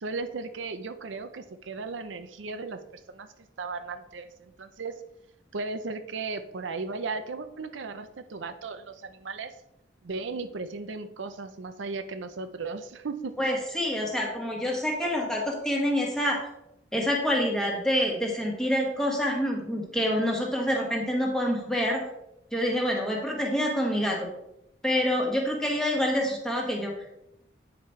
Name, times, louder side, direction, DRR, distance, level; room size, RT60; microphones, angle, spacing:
voice 1, 0.0-3.3 3.6-4.9 5.5-9.5 10.0-13.3, right 4 dB, 80° right, 9 dB, 0.6 m, -36 dB
voice 2, 13.4-16.5 16.9-22.0 22.5-24.3 24.8-27.1, equal, 5° left, -1 dB, 1.4 m, -27 dB
9.2 x 5.0 x 4.4 m, 0.84 s
head